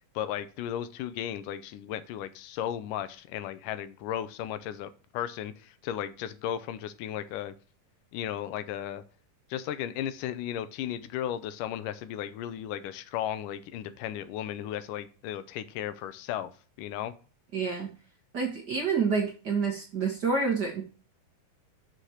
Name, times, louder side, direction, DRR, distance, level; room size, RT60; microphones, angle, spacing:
voice 1, 0.2-7.5 8.1-9.0 9.5-16.5 16.8-17.1, left 11 dB, 90° left, 13 dB, 2.3 m, -35 dB
voice 2, 17.5-17.9 18.3-20.8, right 5 dB, 45° right, 1 dB, 1.4 m, -28 dB
6.4 x 5.8 x 6.3 m, 0.37 s
omnidirectional pair, 3.7 m